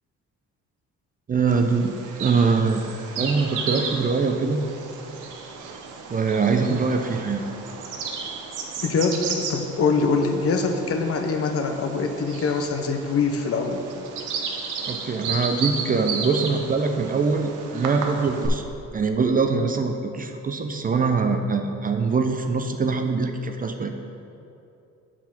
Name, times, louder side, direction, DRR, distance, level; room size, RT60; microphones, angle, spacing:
voice 1, 1.3-2.8 3.2-4.6 6.1-7.4 14.9-18.6 18.9-23.9, right 4 dB, 30° right, 5 dB, 0.5 m, -23 dB
Bird vocalization bird call bird song, 1.5-18.5, right 5 dB, 90° right, 0.8 m, -34 dB
voice 2, 8.8-13.9, left 4 dB, 50° left, 5 dB, 0.7 m, -24 dB
6.1 x 4.5 x 5.7 m, 2.7 s
cardioid pair, 90°, 30 cm